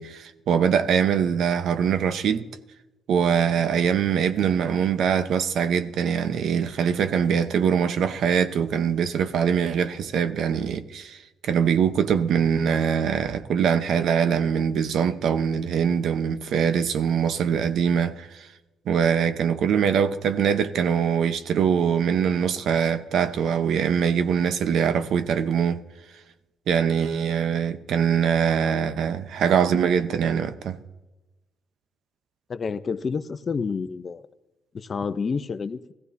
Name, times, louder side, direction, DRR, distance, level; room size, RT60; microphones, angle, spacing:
voice 1, 0.0-2.5 3.1-18.5 18.9-25.8 26.7-30.8, right 7 dB, 70° right, 0.8 m, -23 dB
voice 2, 32.5-34.3 34.7-35.9, left 5 dB, 40° left, 0.6 m, -29 dB
18.0 x 15.5 x 2.7 m
cardioid pair, 90°, 0 cm